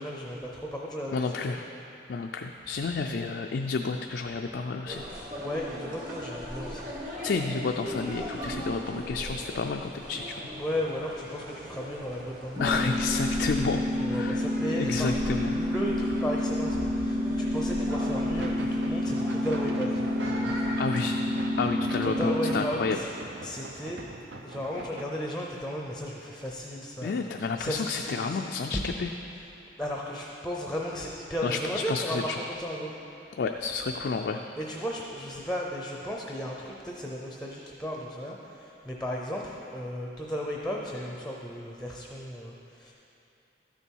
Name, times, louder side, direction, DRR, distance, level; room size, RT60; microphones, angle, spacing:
voice 1, 0.0-1.6 5.3-6.9 10.5-12.9 14.0-20.0 22.0-23.1 23.4-24.0 24.4-27.2 27.6-28.6 29.8-32.9 34.6-42.9, equal, 5° left, -1 dB, 0.6 m, -35 dB
voice 2, 1.1-1.6 2.1-5.0 7.2-10.5 12.6-13.8 14.1-14.5 14.8-15.6 20.8-21.2 21.6-23.0 27.0-29.1 31.4-32.4 33.4-34.4, left 4 dB, 65° left, 3 dB, 0.4 m, -30 dB
sound 1, 4.9-21.0, equal, 50° right, 1.8 m, -39 dB
sound 2, 12.6-22.6, left 1 dB, 30° right, 1.2 m, -29 dB
sound 3, 17.9-25.0, right 2 dB, 70° right, 0.7 m, -42 dB
12.5 x 6.9 x 4.6 m, 2.9 s
head